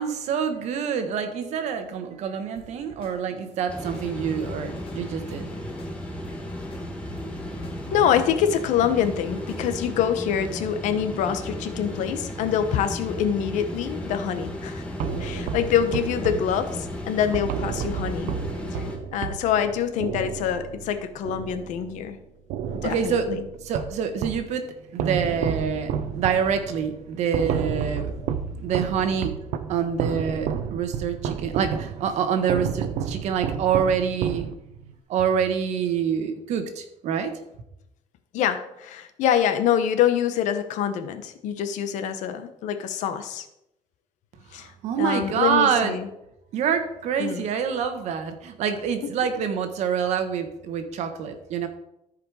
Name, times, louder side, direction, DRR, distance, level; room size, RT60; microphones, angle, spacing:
voice 1, 0.0-5.5 22.8-23.4 23.6-24.7 24.9-28.1 28.6-29.3 29.7-34.5 35.1-37.3 44.5-46.0 46.5-51.7, right 7 dB, 65° right, 7 dB, 1.4 m, -26 dB
sound 1, 2.6-10.2, left 2 dB, 45° left, 1.9 m, -48 dB
sound 2, 3.7-19.0, left 1 dB, 10° left, 1.7 m, -34 dB
voice 2, 7.9-14.8 15.2-18.3 18.7-22.2 22.8-23.5 38.3-43.5 44.5-44.7 45.0-46.1 47.2-47.5, left 9 dB, 75° left, 9 dB, 1.1 m, -25 dB
sound 3, 15.0-22.1 22.5-24.5 25.0-34.9, right 8 dB, 85° right, 0.7 m, -31 dB
13.5 x 5.1 x 4.8 m, 0.84 s
cardioid pair, 155°, 13 cm